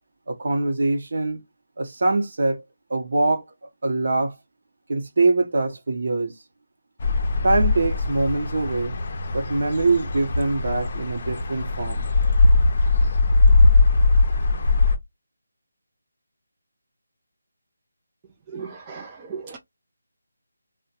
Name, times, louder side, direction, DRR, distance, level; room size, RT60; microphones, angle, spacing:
voice 1, 0.3-1.4 1.8-2.6 2.9-3.4 3.8-4.3 4.9-6.3 7.4-9.0 9.3-12.0, right 3 dB, 55° right, 0.8 m, -23 dB
sound 1, 7.0-15.0, left 3 dB, 40° left, 0.5 m, -20 dB
voice 2, 18.5-19.6, right 5 dB, 20° right, 0.3 m, -36 dB
3.3 x 2.1 x 2.8 m
figure-of-eight pair, 160°, 0 cm